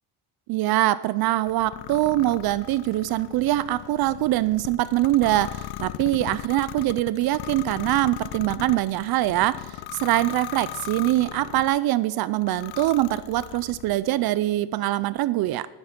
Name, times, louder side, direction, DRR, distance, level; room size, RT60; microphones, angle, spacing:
voice 1, 0.5-15.7, right 15 dB, 65° right, 17 dB, 0.5 m, -23 dB
sound 1, 1.5-11.8 12.3-14.0, left 16 dB, 75° left, 0.6 m, -38 dB
11.5 x 10.5 x 5.9 m, 1.2 s
cardioid pair, 130°, 40 cm